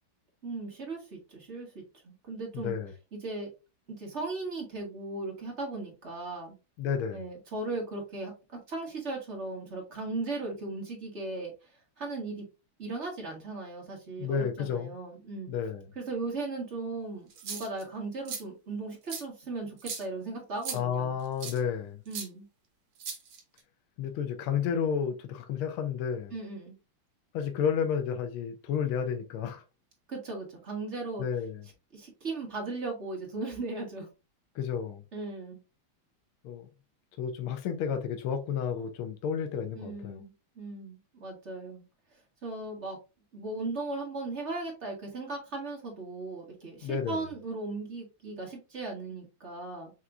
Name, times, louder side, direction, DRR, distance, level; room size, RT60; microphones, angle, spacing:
voice 1, 0.4-2.7 3.1-3.5 3.9-6.5 7.1-12.5 12.8-15.5 15.9-21.2 22.1-22.5 26.3-26.8 30.1-31.2 31.9-34.1 35.1-35.6 39.7-41.8 42.4-43.0 43.3-49.9, right 3 dB, 35° right, 1.5 m, -37 dB
voice 2, 2.5-2.9 6.8-7.2 14.2-14.9 15.5-15.8 20.7-22.0 24.0-26.3 27.3-29.6 31.2-31.6 34.5-35.0 36.4-36.7 37.2-40.2 46.8-47.2, left 7 dB, 80° left, 1.5 m, -31 dB
sound 1, 17.3-17.8 18.3-18.4 19.1-19.2 19.8-20.0 20.6-20.8 21.4-21.6 22.1-22.3 23.0-23.6, right 6 dB, 70° right, 1.9 m, -37 dB
5.8 x 3.0 x 2.5 m
omnidirectional pair, 2.3 m